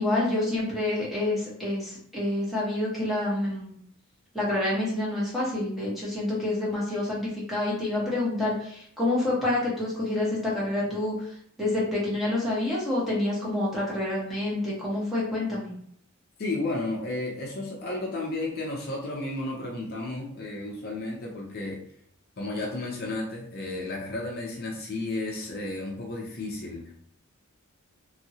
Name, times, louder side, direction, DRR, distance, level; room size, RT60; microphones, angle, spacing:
voice 1, 0.0-3.7 4.3-11.3 11.6-15.7, left 2 dB, ahead, -7 dB, 1.1 m, -28 dB
voice 2, 16.4-21.8 22.4-26.9, left 2 dB, 45° left, -2 dB, 0.6 m, -33 dB
2.9 x 2.6 x 2.7 m, 0.64 s
head